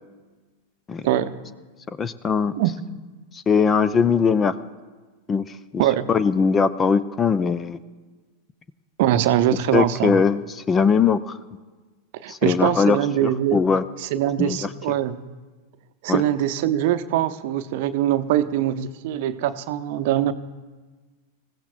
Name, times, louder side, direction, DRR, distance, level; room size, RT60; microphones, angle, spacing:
voice 1, 2.0-2.5 3.3-4.6 5.3-5.8 6.1-7.8 9.7-11.4 12.3-13.8 14.4-14.7 16.1-16.2, left 5 dB, 20° left, 15 dB, 0.5 m, -21 dB
voice 2, 5.8-6.1 9.0-10.2 12.2-13.6 14.0-15.2 16.0-20.3, right 12 dB, 50° right, 11 dB, 0.7 m, -22 dB
26.0 x 15.0 x 2.4 m, 1.3 s
figure-of-eight pair, 90°, 0 cm